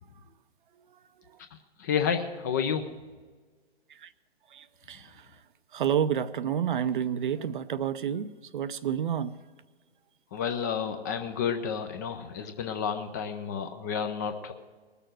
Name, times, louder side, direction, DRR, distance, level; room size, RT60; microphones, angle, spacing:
voice 1, 1.8-2.8 10.3-14.5, left 7 dB, 20° left, 7 dB, 0.4 m, -30 dB
voice 2, 4.5-5.3 5.7-9.4, right 8 dB, 50° right, 14 dB, 0.6 m, -29 dB
19.5 x 6.8 x 7.6 m, 1.4 s
figure-of-eight pair, 130°, 32 cm